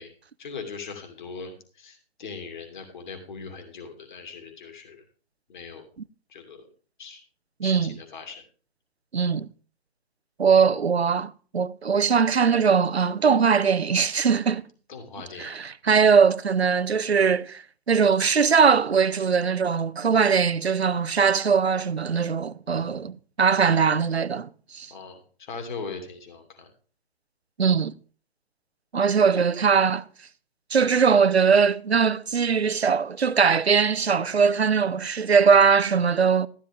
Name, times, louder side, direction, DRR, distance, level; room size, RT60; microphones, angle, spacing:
voice 1, 0.0-5.0 5.5-5.9 6.3-6.7 7.0-7.2 7.6-8.4 14.9-15.6 22.7-23.1 24.9-26.7, left 5 dB, 50° left, 2.6 m, -40 dB
voice 2, 7.6-7.9 9.1-9.5 10.4-14.6 15.4-24.9 27.6-27.9 28.9-30.0 30.7-36.5, right 6 dB, 90° right, 0.7 m, -21 dB
14.0 x 9.8 x 3.5 m
figure-of-eight pair, 135°, 31 cm